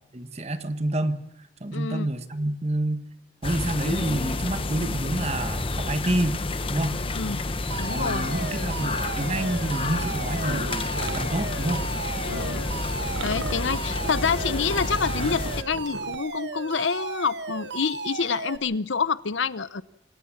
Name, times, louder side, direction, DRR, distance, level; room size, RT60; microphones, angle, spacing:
voice 1, 0.1-1.2 1.6-3.1 3.4-6.4 6.7-7.0 7.9-10.9 11.1-11.9, right 1 dB, 35° right, 10 dB, 1.4 m, -28 dB
voice 2, 1.7-2.1 7.1-7.4 7.8-8.3 12.3-19.8, left 5 dB, 80° left, 17 dB, 0.8 m, -28 dB
sound 1, 3.4-15.6, left 2 dB, 30° left, 1.0 m, -29 dB
Alarm, 7.7-18.6, right 4 dB, 65° right, 1.3 m, -35 dB
sound 2, 10.5-16.2, right 3 dB, 85° right, 0.9 m, -39 dB
27.0 x 15.0 x 7.3 m, 0.86 s
head